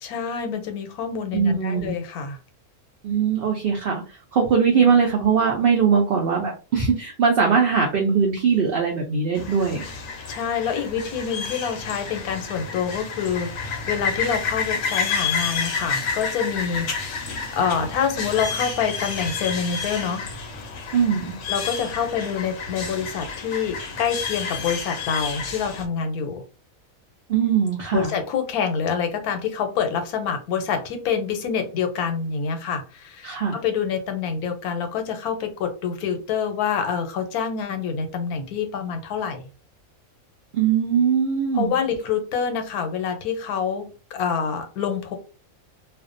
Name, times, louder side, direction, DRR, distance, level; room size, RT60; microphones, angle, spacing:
voice 1, 0.0-2.4 4.7-5.0 10.3-20.3 21.5-26.4 27.9-39.4 41.5-45.2, left 7 dB, 90° left, 6 dB, 1.1 m, -27 dB
voice 2, 1.3-1.9 3.0-9.8 20.9-21.3 27.3-28.1 33.2-33.6 40.5-41.7, right 6 dB, 85° right, 1 dB, 0.5 m, -21 dB
sound 1, 9.4-25.9, left 5 dB, 65° left, 0.8 m, -30 dB
2.5 x 2.1 x 2.5 m, 0.34 s
omnidirectional pair, 1.5 m